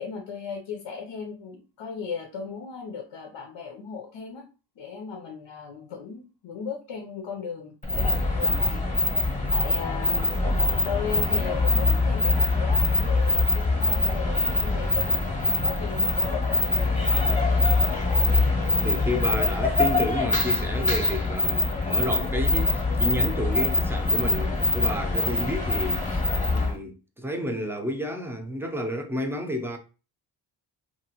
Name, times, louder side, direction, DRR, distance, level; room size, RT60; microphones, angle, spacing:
voice 1, 0.0-4.5 4.8-10.3 10.8-18.0, left 6 dB, 85° left, 0.7 m, -37 dB
sound 1, 7.8-26.7, left 3 dB, 15° left, 0.9 m, -23 dB
voice 2, 18.8-26.2 26.5-29.8, left 1 dB, 5° right, 0.5 m, -31 dB
2.9 x 2.6 x 2.8 m
cardioid pair, 90°, 45 cm